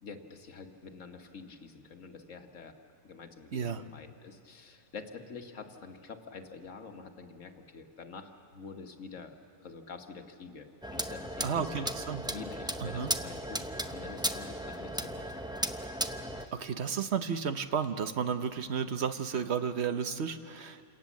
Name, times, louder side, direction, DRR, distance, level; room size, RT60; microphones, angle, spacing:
voice 1, 0.0-2.7 3.0-9.4 9.6-11.9 12.3-15.3 16.9-17.0, left 5 dB, 60° left, 4 dB, 1.7 m, -47 dB
voice 2, 3.5-3.8 11.4-12.2 12.8-13.1 16.5-20.9, right 7 dB, 55° right, 9 dB, 1.0 m, -32 dB
sound 1, 10.8-16.5, right 1 dB, 5° right, 0.3 m, -36 dB
27.5 x 18.5 x 7.4 m, 2.4 s
omnidirectional pair, 1.5 m